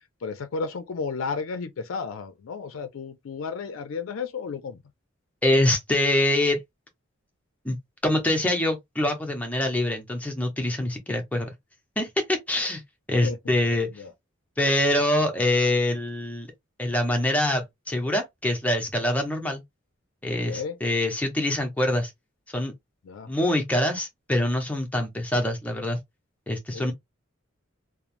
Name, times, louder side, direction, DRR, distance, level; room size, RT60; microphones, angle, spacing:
voice 1, 0.2-4.8 13.2-14.1 20.3-20.8 23.0-23.3 26.7-26.9, left 5 dB, 75° left, 0.4 m, -33 dB
voice 2, 5.4-6.6 7.6-7.8 8.0-11.5 12.0-12.8 13.1-13.9 14.6-16.5 16.8-19.6 20.2-22.1 22.5-22.7 23.3-26.0 26.5-26.9, left 1 dB, 5° left, 0.6 m, -24 dB
3.0 x 2.0 x 2.5 m
head